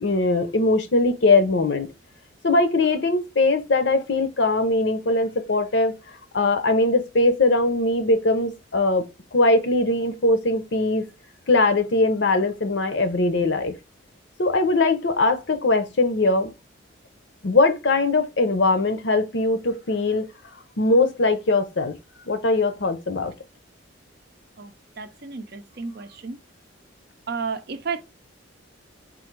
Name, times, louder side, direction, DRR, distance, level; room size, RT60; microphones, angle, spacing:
voice 1, 0.0-1.9 2.4-11.1 11.5-13.7 14.4-16.5 17.4-20.3 20.8-21.9 22.3-23.3, left 2 dB, 60° left, 0.7 m, -21 dB
voice 2, 25.0-26.4 27.3-28.0, right 5 dB, 50° right, 0.5 m, -32 dB
3.8 x 2.6 x 4.5 m
head